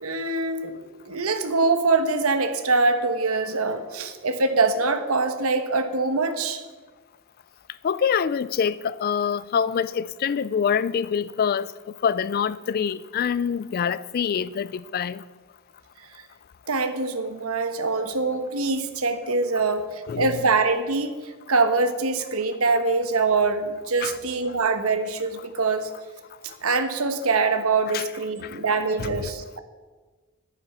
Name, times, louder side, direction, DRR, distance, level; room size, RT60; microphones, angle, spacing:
voice 1, 0.0-0.8 1.1-6.6 16.7-21.2 21.5-25.9 26.6-29.6, right 3 dB, 75° right, 1.1 m, -24 dB
voice 2, 7.8-11.7 12.0-15.2 20.1-20.4 24.0-24.2 27.9-28.1 28.4-28.6 29.0-29.1, left 7 dB, 45° left, 0.3 m, -25 dB
11.0 x 9.0 x 5.6 m
head